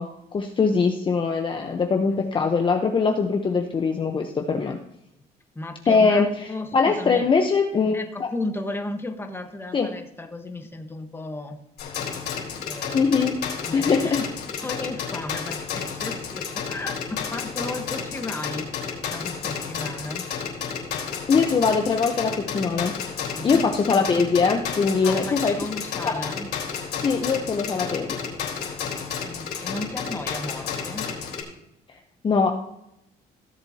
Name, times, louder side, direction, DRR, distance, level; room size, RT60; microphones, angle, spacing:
voice 1, 0.0-4.8 5.9-8.3 9.7-9.9 12.9-13.5 13.7-14.2 21.3-23.0 23.4-25.6 26.0-26.2 27.0-28.2 31.9-32.0 32.2-32.6, left 5 dB, 30° left, 3 dB, 0.9 m, -22 dB
voice 2, 5.5-7.3 7.9-11.6 12.7-13.1 13.6-14.2 14.6-20.2 23.3-23.7 25.0-26.5 29.3-31.1, left 2 dB, 15° left, 5 dB, 1.3 m, -34 dB
sound 1, 11.8-31.4, left 6 dB, 75° left, 3.5 m, -32 dB
16.5 x 7.8 x 2.8 m, 0.82 s
cardioid pair, 110°, 17 cm